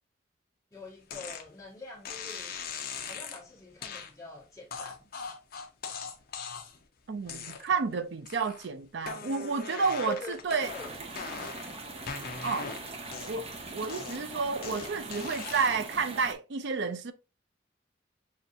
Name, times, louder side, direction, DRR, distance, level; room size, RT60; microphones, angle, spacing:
voice 1, 0.7-2.6 3.1-5.1 10.1-10.9 11.3-11.5, left 2 dB, 15° left, 1.6 m, -44 dB
sound 1, 1.1-1.5 2.0-3.4 3.8-4.1 4.7-6.8 7.2-7.9 8.3-8.7 9.0-11.7 12.1-13.5 13.9-15.9, left 5 dB, 55° left, 0.8 m, -40 dB
voice 2, 7.1-10.7 12.4-12.7 13.3-17.1, right 5 dB, 65° right, 0.5 m, -31 dB
sound 2, 10.6-16.3, right 3 dB, 35° right, 0.8 m, -42 dB
6.2 x 2.6 x 2.7 m
head